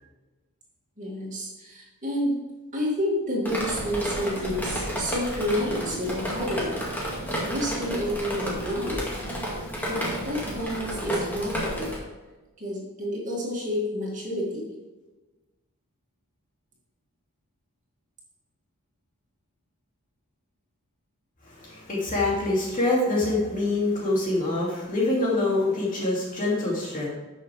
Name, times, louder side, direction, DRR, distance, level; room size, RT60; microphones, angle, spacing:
voice 1, 1.0-2.4 2.7-6.8 7.5-9.1 9.8-12.0 12.6-14.7, equal, 35° right, -4 dB, 2.5 m, -29 dB
Drip, 3.5-12.0, equal, 10° left, 2.2 m, -31 dB
voice 2, 21.5-27.1, left 2 dB, 35° left, -5 dB, 2.6 m, -25 dB
12.0 x 6.4 x 3.5 m, 1.2 s
head